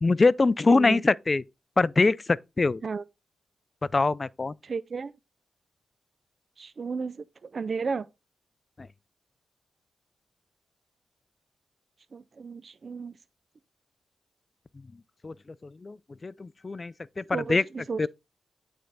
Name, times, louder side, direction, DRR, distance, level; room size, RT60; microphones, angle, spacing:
voice 1, 0.0-1.4 1.8-2.8 3.9-4.5 15.2-15.3 15.8-16.0 16.2-17.6 18.0-18.1, left 3 dB, 35° left, 0.3 m, -23 dB
voice 2, 0.7-1.0 2.8-3.0 4.6-5.1 6.6-8.1 12.1-13.2 17.3-18.1, right 5 dB, 55° right, 0.3 m, -33 dB
8.6 x 3.4 x 3.9 m
cardioid pair, 55°, 0 cm